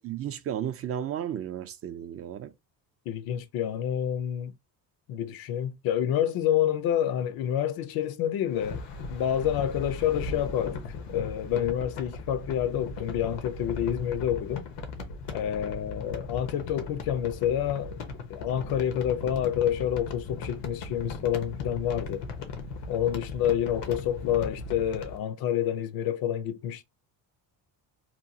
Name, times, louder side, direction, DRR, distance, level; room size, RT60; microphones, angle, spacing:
voice 1, 0.0-2.5, right 10 dB, 35° right, 0.4 m, -33 dB
voice 2, 3.1-4.5 5.1-8.8 9.1-14.7 15.3-18.0 18.3-22.3 22.9-26.8, left 10 dB, 65° left, 0.6 m, -28 dB
sound 1, 8.5-25.2, left 4 dB, 85° left, 0.9 m, -38 dB
2.9 x 2.2 x 2.6 m
cardioid pair, 125°, 40 cm